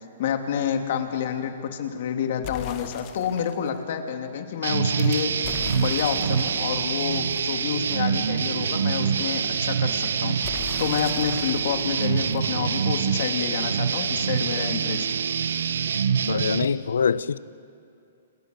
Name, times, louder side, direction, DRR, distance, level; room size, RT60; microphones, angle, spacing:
voice 1, 0.2-15.1, left 8 dB, 55° left, 3.0 m, -29 dB
sound 1, 2.4-3.7 5.4-8.2 10.4-13.2, left 14 dB, 35° left, 1.1 m, -40 dB
sound 2, 2.6-5.3, right 8 dB, 30° right, 3.5 m, -51 dB
sound 3, 4.6-16.7, right 7 dB, 80° right, 1.3 m, -25 dB
voice 2, 16.3-17.4, left 6 dB, 90° left, 0.7 m, -24 dB
29.0 x 28.0 x 6.8 m
hypercardioid pair, 145°, 0 cm